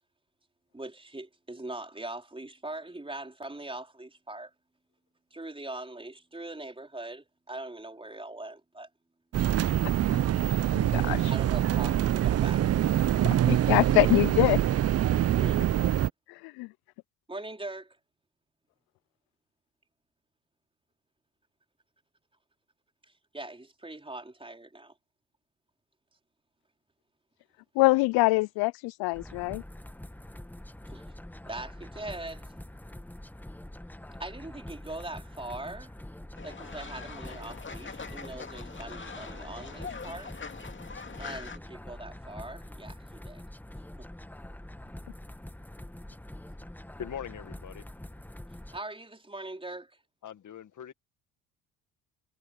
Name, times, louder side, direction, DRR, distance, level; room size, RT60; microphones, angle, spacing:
voice 1, 0.7-4.5 5.3-8.9 11.0-12.7 15.1-15.7 17.3-18.0 23.3-24.9 30.9-31.0 31.5-32.6 34.2-35.9 36.4-40.3 41.2-43.4 44.0-44.1 48.7-49.9, right 2 dB, 15° right, 4.5 m, -41 dB
sound 1, 9.3-16.1, right 12 dB, 40° right, 0.6 m, -25 dB
voice 2, 10.7-11.3 13.2-14.6 16.3-16.7 27.8-29.6, left 23 dB, 70° left, 0.5 m, -25 dB
sound 2, 29.1-48.8, left 1 dB, 5° left, 1.6 m, -45 dB
Fowl, 36.4-41.6, left 5 dB, 30° left, 2.4 m, -43 dB
voice 3, 47.0-47.9 50.2-50.9, left 9 dB, 50° left, 1.7 m, -41 dB
hypercardioid pair, 65°, 38 cm